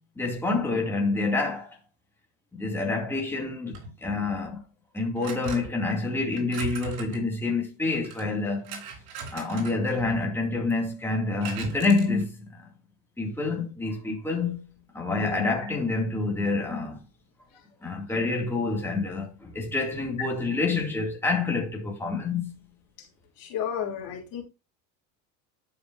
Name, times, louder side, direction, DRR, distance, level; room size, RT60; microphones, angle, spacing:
voice 1, 0.2-1.8 2.5-4.6 4.9-8.8 9.3-12.4 13.2-14.6 14.9-17.0 17.8-22.6, left 3 dB, 5° left, 2.3 m, -27 dB
sound 1, 3.7-4.0 5.2-5.8 6.4-7.3 7.9-10.3 10.7-10.8 11.4-12.2, right 4 dB, 65° right, 3.5 m, -38 dB
voice 2, 15.2-15.5 23.4-24.4, left 8 dB, 55° left, 3.0 m, -32 dB
11.5 x 5.1 x 2.6 m
supercardioid pair, 95°, 40 cm